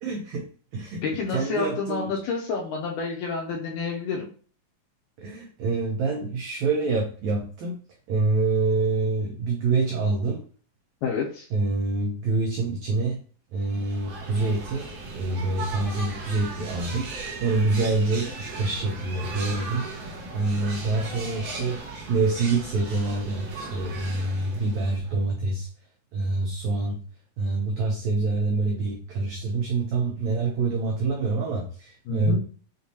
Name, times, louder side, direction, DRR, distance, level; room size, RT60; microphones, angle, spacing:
voice 1, 0.0-2.2 5.2-7.8 8.1-10.4 11.5-13.2 13.5-25.7 26.1-27.0 27.4-32.4, right 3 dB, 85° right, 0 dB, 1.5 m, -26 dB
voice 2, 1.0-4.3 11.0-11.5 32.1-32.4, left 5 dB, 80° left, 0 dB, 1.9 m, -29 dB
sound 1, 13.6-25.2, right 3 dB, 60° right, 1.8 m, -37 dB
6.4 x 2.7 x 2.7 m, 0.41 s
omnidirectional pair, 4.1 m